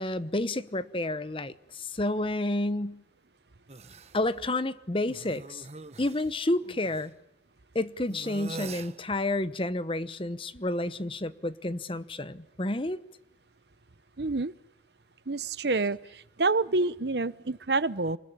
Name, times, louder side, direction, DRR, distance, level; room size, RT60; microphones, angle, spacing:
voice 1, 0.0-3.0 4.1-5.6 6.0-7.1 7.7-13.0, left 1 dB, 30° left, 1.1 m, -30 dB
sound 1, 3.7-4.2 5.0-7.1 8.1-9.0, right 3 dB, 35° right, 1.2 m, -43 dB
voice 2, 14.2-14.5 15.3-18.2, right 3 dB, 65° right, 0.9 m, -28 dB
29.0 x 20.5 x 8.6 m
head